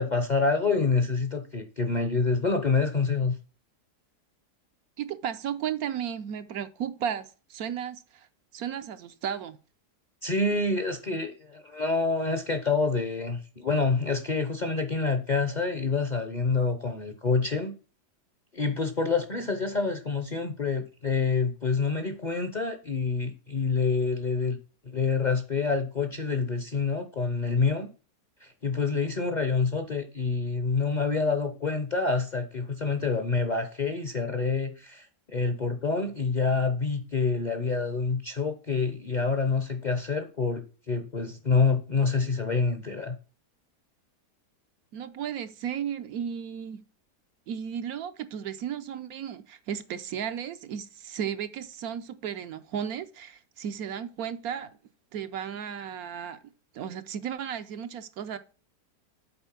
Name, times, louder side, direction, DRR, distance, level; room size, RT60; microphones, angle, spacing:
voice 1, 0.0-3.4 10.2-17.7 18.5-24.6 24.9-27.9 28.4-43.1, left 4 dB, 40° left, 0.7 m, -27 dB
voice 2, 5.0-8.3 8.5-9.6 44.9-46.8 47.5-54.8 55.1-56.4 56.7-58.4, right 8 dB, 70° right, 1.1 m, -34 dB
8.0 x 4.3 x 5.9 m
omnidirectional pair, 1.7 m